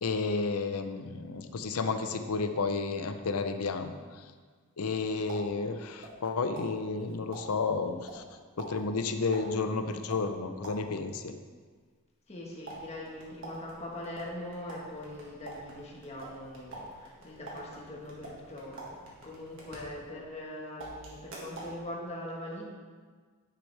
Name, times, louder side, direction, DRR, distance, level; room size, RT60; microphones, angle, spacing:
voice 1, 0.0-4.2 4.8-8.2 8.6-11.3, left 4 dB, 75° left, 8 dB, 0.6 m, -32 dB
sound 1, 4.9-6.3 6.6-11.1 12.6-20.4 20.8-21.8, right 2 dB, 60° right, 1.8 m, -47 dB
voice 2, 12.3-22.7, left 1 dB, 30° left, -2 dB, 1.3 m, -42 dB
10.0 x 6.4 x 3.3 m, 1.5 s
head